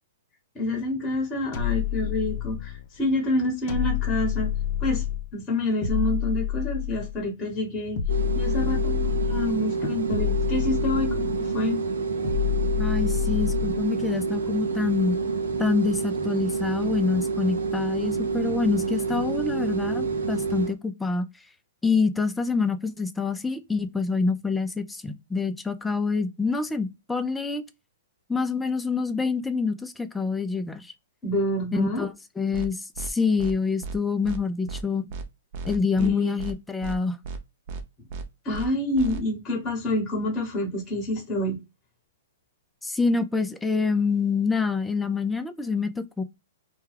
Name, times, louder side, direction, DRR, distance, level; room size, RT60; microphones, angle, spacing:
voice 1, 0.5-4.5 4.8-5.0 5.3-8.0 8.3-11.8 31.2-32.1 36.0-36.3 38.4-41.6, left 1 dB, 20° left, 1.1 m, -27 dB
sound 1, 1.5-2.8 3.7-5.3 5.8-7.2 7.9-9.6 10.1-11.5 12.2-13.8, left 12 dB, 45° left, 0.7 m, -28 dB
sound 2, 8.1-20.7, right 4 dB, 85° right, 0.6 m, -28 dB
voice 2, 12.8-15.2 15.6-21.3 21.8-27.6 28.3-30.9 31.7-35.1 35.7-37.2 42.8-46.2, left 4 dB, 5° left, 0.3 m, -26 dB
sound 3, 32.5-32.7 33.0-33.1 33.4-33.5 33.8-34.0 34.2-34.4 34.7-34.8 35.1-35.2 35.5-36.1 36.4-36.5 36.8-37.0 37.2-37.4 37.7-37.8 38.1-38.2 38.5-38.7 39.0-39.2, right 4 dB, 45° right, 0.6 m, -34 dB
2.2 x 2.2 x 3.2 m
hypercardioid pair, 135°, 0 cm